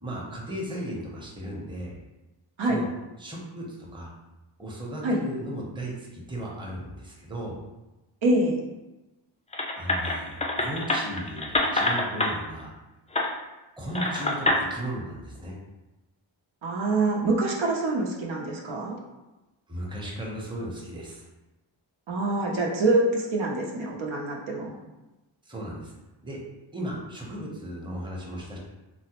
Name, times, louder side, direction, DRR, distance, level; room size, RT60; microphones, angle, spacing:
voice 1, 0.0-2.0 2.6-2.9 3.2-4.1 4.6-7.6 9.8-12.7 13.8-15.6 19.7-21.2 25.5-25.9 26.2-26.4 26.7-28.6, right 1 dB, 10° right, -3 dB, 0.7 m, -36 dB
voice 2, 8.2-8.6 16.6-18.9 22.1-24.8, right 2 dB, 85° right, -1 dB, 0.7 m, -25 dB
sound 1, 9.5-12.3 13.1-13.3 13.9-14.6, left 1 dB, 15° left, 0.3 m, -26 dB
3.8 x 2.0 x 2.9 m, 1.0 s
wide cardioid pair, 90°, 46 cm